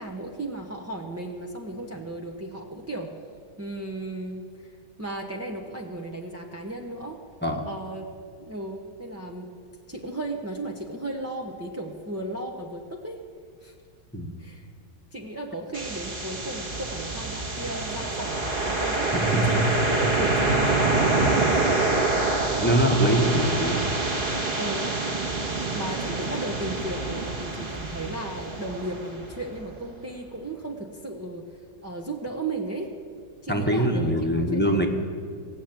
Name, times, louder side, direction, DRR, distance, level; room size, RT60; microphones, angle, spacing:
voice 1, 0.0-3.1 3.6-7.2 7.6-8.0 8.4-9.5 9.9-13.2 13.6-13.7 14.4-14.7 15.1-21.6 24.3-24.9 25.5-32.9 33.4-34.9, right 1 dB, 15° right, -1 dB, 0.6 m, -35 dB
sound 1, 15.7-29.6, right 2 dB, 35° right, 1.4 m, -26 dB
voice 2, 19.1-19.6 22.6-23.9 33.5-34.9, right 1 dB, 5° left, 2 dB, 1.0 m, -23 dB
17.5 x 7.2 x 9.0 m, 2.2 s
omnidirectional pair, 1.9 m